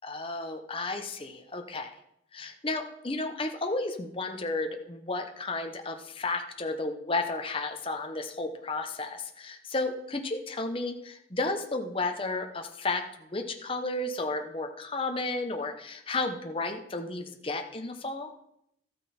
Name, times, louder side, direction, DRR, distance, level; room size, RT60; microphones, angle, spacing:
voice 1, 0.0-1.9 2.3-18.3, left 2 dB, 25° left, 5 dB, 0.9 m, -33 dB
13.0 x 8.8 x 4.3 m, 0.77 s
head